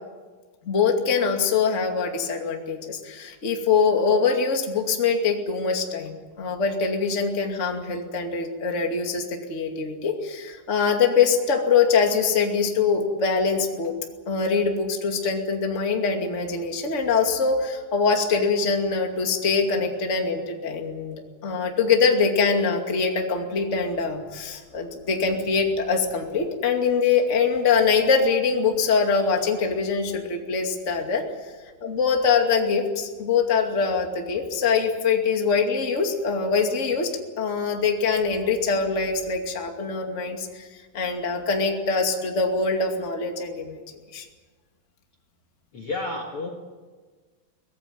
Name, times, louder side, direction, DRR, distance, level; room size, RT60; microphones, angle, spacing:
voice 1, 0.6-13.9 14.3-31.2 31.8-37.1 37.4-40.7 40.9-43.8 44.1-44.2, left 5 dB, 25° left, 2 dB, 2.2 m, -23 dB
voice 2, 45.7-46.5, left 2 dB, 45° left, 4 dB, 2.3 m, -30 dB
23.5 x 18.0 x 9.2 m, 1.4 s
omnidirectional pair, 4.3 m